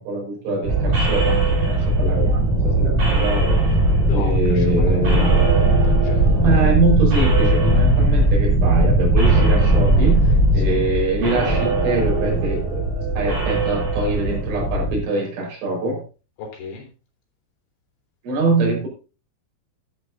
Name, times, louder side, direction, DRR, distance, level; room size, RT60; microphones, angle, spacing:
voice 1, 0.0-3.6 4.1-5.5 6.4-12.9 13.2-16.0 18.2-18.9, right 2 dB, 70° right, 0 dB, 7.0 m, -24 dB
sound 1, 0.6-15.0, right 2 dB, 40° right, 7.7 m, -18 dB
voice 2, 3.9-6.8 10.6-10.8 16.4-16.9, left 5 dB, 75° left, 1 dB, 6.3 m, -35 dB
13.5 x 11.5 x 2.6 m, 0.32 s
omnidirectional pair, 5.7 m